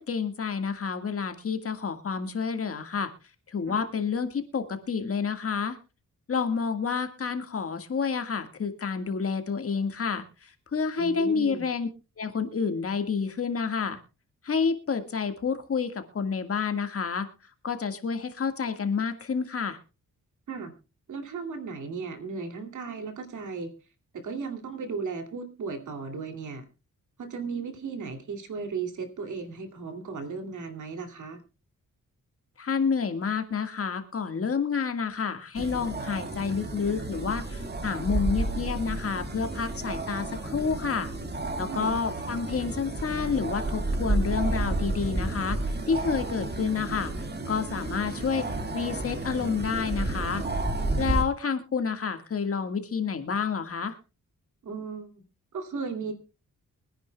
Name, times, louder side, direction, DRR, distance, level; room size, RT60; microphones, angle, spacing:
voice 1, 0.1-3.1 3.5-5.8 6.3-11.9 12.2-14.0 14.4-17.3 17.6-19.8 32.6-41.1 41.6-45.6 45.9-47.1 47.5-48.5 48.7-50.4 51.0-54.0, left 5 dB, 45° left, 8 dB, 1.7 m, -29 dB
voice 2, 11.0-11.6 20.5-20.7 21.1-23.7 24.1-26.6 27.2-31.4 41.7-41.9 54.6-55.1 55.5-56.1, right 5 dB, 65° right, 6 dB, 2.6 m, -35 dB
sound 1, 35.6-51.2, right 2 dB, 30° right, 2.0 m, -31 dB
24.0 x 10.0 x 2.3 m, 0.30 s
cardioid pair, 115°, 32 cm